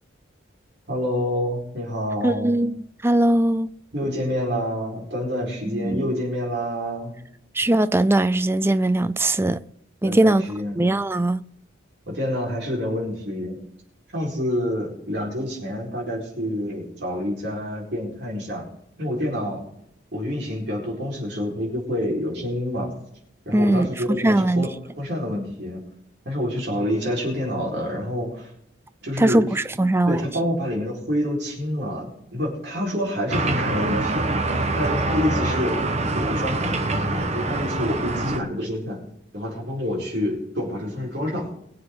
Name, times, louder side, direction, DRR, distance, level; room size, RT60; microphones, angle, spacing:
voice 1, 0.9-2.5 3.9-7.1 10.0-10.8 12.1-13.6 14.1-18.7 19.0-19.7 20.1-22.9 23.4-25.9 26.2-28.5 29.0-29.4 30.0-34.3 34.8-35.8 36.1-39.0 39.3-41.5, equal, 60° right, 4.7 m, -27 dB
voice 2, 2.2-3.7 5.7-6.1 7.5-9.6 10.0-10.4 10.8-11.4 23.5-24.7 29.2-30.3, right 1 dB, 10° right, 0.4 m, -20 dB
sound 1, 33.3-38.4, right 2 dB, 35° right, 1.1 m, -25 dB
22.5 x 7.7 x 3.9 m
head